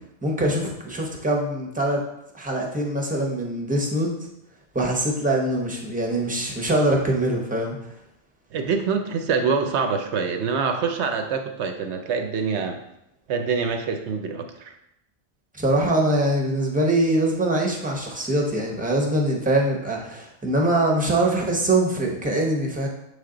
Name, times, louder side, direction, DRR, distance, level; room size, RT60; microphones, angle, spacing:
voice 1, 0.2-2.0 2.3-4.1 4.7-7.8 15.6-22.9, right 1 dB, 10° right, -1 dB, 0.6 m, -23 dB
voice 2, 8.5-12.8 13.3-14.7, right 5 dB, 65° right, 5 dB, 0.8 m, -25 dB
7.3 x 3.5 x 3.8 m, 0.82 s
omnidirectional pair, 1.5 m